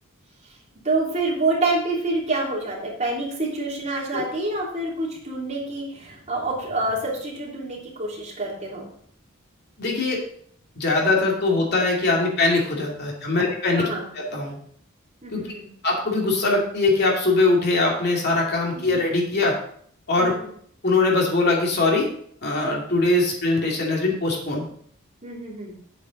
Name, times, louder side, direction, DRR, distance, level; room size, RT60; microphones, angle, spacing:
voice 1, 0.8-8.9 13.8-14.1 15.2-15.7 20.2-20.5 25.2-25.8, right 2 dB, 35° right, -3 dB, 3.1 m, -27 dB
voice 2, 9.8-10.2 10.8-13.9 14.2-14.6 15.3-15.4 15.8-19.6 20.1-20.3 20.8-22.1 22.4-24.7, left 2 dB, 50° left, -1 dB, 2.5 m, -21 dB
9.0 x 8.3 x 4.1 m, 0.62 s
head